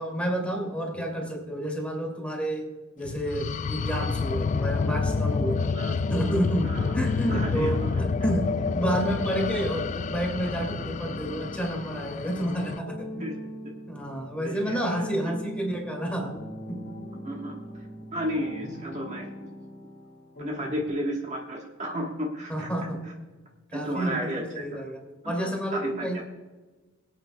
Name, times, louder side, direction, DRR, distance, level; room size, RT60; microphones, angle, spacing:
voice 1, 0.0-2.7 3.0-5.7 6.1-13.2 13.9-16.8 20.6-20.7 22.5-23.0 23.7-26.2, right 1 dB, 5° left, 0 dB, 2.4 m, -30 dB
sound 1, 3.1-12.8, left 4 dB, 35° left, 0.3 m, -29 dB
sound 2, 4.6-20.9, equal, 55° left, 1.9 m, -41 dB
voice 2, 7.3-8.0 13.2-13.3 14.4-15.3 17.2-17.9 18.1-19.3 20.4-22.7 23.7-24.4 25.2-26.1, equal, 35° right, 0 dB, 1.3 m, -33 dB
23.0 x 8.5 x 2.2 m, 1.2 s
head